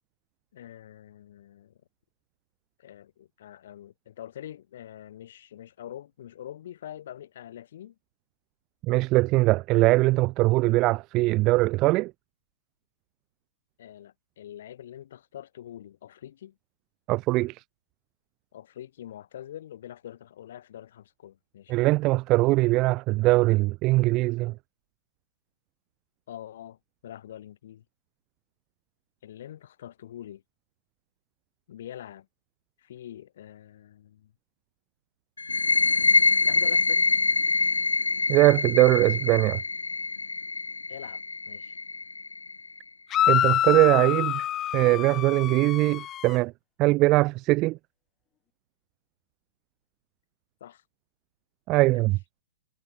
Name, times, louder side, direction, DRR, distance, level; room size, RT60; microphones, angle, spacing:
voice 1, 0.5-1.8 2.8-8.0 13.8-16.6 18.5-21.9 26.3-27.8 29.2-30.4 31.7-32.3 32.8-34.3 36.4-37.1 40.9-41.8 50.6-50.8 51.9-52.1, left 11 dB, 50° left, 2.1 m, -44 dB
voice 2, 8.9-12.1 17.1-17.6 21.7-24.5 38.3-39.6 43.3-44.5 44.7-46.5 46.8-47.8 51.7-52.4, right 20 dB, 30° right, 0.5 m, -21 dB
sound 1, 35.4-42.8, left 3 dB, 75° left, 0.4 m, -25 dB
sound 2, 43.1-46.4, left 12 dB, 25° left, 0.5 m, -26 dB
figure-of-eight pair, 115°, 0 cm